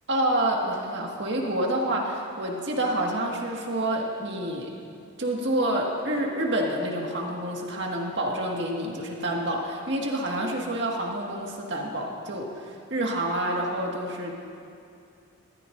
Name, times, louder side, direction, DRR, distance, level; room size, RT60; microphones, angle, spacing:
voice 1, 0.1-4.7 5.2-14.3, right 1 dB, 60° right, -1 dB, 1.8 m, -28 dB
21.0 x 14.5 x 2.6 m, 2.5 s
head